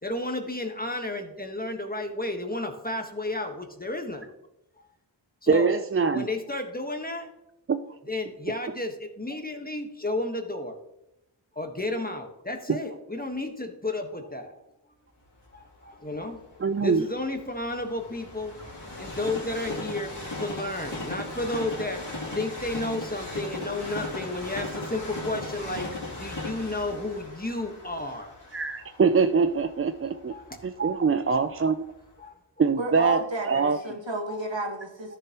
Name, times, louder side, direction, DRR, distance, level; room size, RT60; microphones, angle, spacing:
voice 1, 0.0-4.3 4.8-4.9 5.4-5.7 6.1-7.3 8.0-10.8 11.5-14.6 15.5-16.4 16.8-18.5 19.0-22.0 22.3-28.3 30.3-30.6 30.9-31.0 32.2-32.7 33.4-33.5 34.3-34.4, left 2 dB, 20° left, 4 dB, 1.3 m, -32 dB
voice 2, 5.5-6.3 7.7-7.8 16.6-17.0 28.5-30.3 30.6-31.7 32.6-33.8, right 5 dB, 30° right, 9 dB, 0.4 m, -23 dB
Train, 15.5-31.4 32.0-32.1, left 2 dB, 65° left, 2.9 m, -38 dB
voice 3, 32.8-35.2, right 2 dB, 70° right, 2 dB, 1.8 m, -32 dB
13.0 x 6.9 x 3.0 m, 0.87 s
wide cardioid pair, 40°, 46 cm